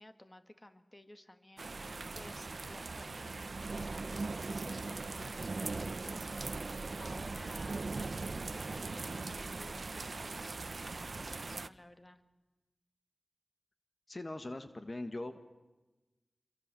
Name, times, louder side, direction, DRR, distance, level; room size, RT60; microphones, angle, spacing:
voice 1, 0.0-12.2, left 1 dB, 20° left, 9 dB, 1.9 m, -55 dB
sound 1, 1.6-11.7, right 3 dB, 60° right, 0.9 m, -40 dB
voice 2, 14.1-15.4, left 2 dB, 40° left, 8 dB, 1.6 m, -41 dB
28.5 x 23.0 x 7.7 m, 1.1 s
wide cardioid pair, 65°, 0 cm